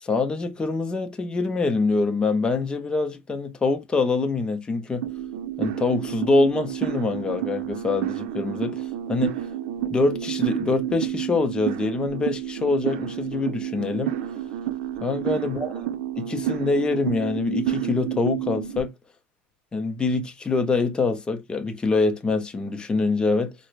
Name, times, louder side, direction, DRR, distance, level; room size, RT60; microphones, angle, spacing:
voice 1, 0.0-5.1 5.6-9.4 9.9-14.1 15.0-15.7 16.2-18.9 19.7-23.5, left 3 dB, 15° left, 0.6 m, -25 dB
sound 1, 5.0-18.8, right 11 dB, 65° right, 0.7 m, -30 dB
4.3 x 2.1 x 2.4 m
supercardioid pair, 125°, 7 cm